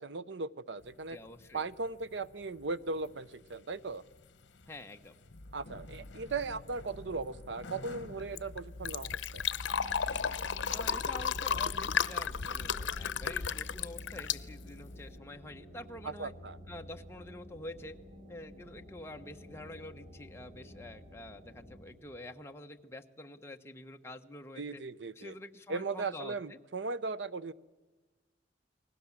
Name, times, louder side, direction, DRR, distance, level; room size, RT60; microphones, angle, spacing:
voice 1, 0.0-1.2 1.5-4.0 5.5-9.4 16.0-16.6 24.6-25.3 25.7-27.5, right 3 dB, 65° right, 16 dB, 0.7 m, -38 dB
sound 1, 0.8-15.0, left 2 dB, 65° left, 1.2 m, -54 dB
voice 2, 1.1-1.6 4.7-5.1 10.1-10.4 10.7-16.3 16.7-18.0 18.3-24.8 25.1-26.6, left 1 dB, 15° left, 4 dB, 1.2 m, -47 dB
Fill (with liquid), 8.1-15.2, left 7 dB, 80° left, 0.8 m, -34 dB
sound 2, 9.7-21.9, equal, 30° right, 6.2 m, -53 dB
29.5 x 20.5 x 7.3 m, 1.2 s
head